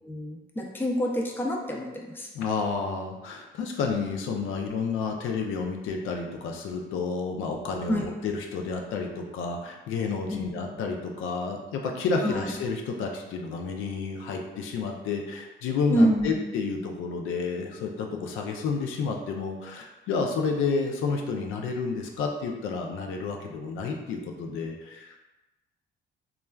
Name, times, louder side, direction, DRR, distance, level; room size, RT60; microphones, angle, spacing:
voice 1, 0.0-2.3 7.9-8.1 10.3-10.6 12.2-12.5 15.9-16.4, equal, 10° left, 0 dB, 0.4 m, -27 dB
voice 2, 2.3-25.2, left 4 dB, 85° left, 2 dB, 0.4 m, -30 dB
3.1 x 2.3 x 2.2 m, 1.1 s
cardioid pair, 90°, 20 cm